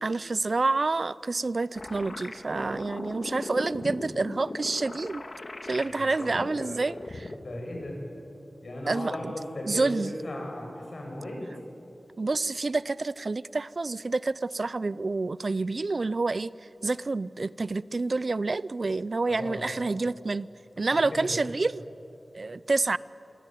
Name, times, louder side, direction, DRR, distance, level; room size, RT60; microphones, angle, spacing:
voice 1, 0.0-5.2 5.6-7.3 8.9-9.1 9.7-10.2 12.2-16.5 16.8-20.5 20.8-21.8 22.3-23.0, right 3 dB, 65° right, 19 dB, 0.5 m, -28 dB
sound 1, 1.7-7.4, left 2 dB, 60° left, 2.1 m, -39 dB
voice 2, 5.8-6.8 7.4-8.0 8.6-11.5 19.3-19.7 21.1-21.4, left 1 dB, 75° left, 0 dB, 7.9 m, -37 dB
27.5 x 23.5 x 9.2 m, 3.0 s
cardioid pair, 45°, 0 cm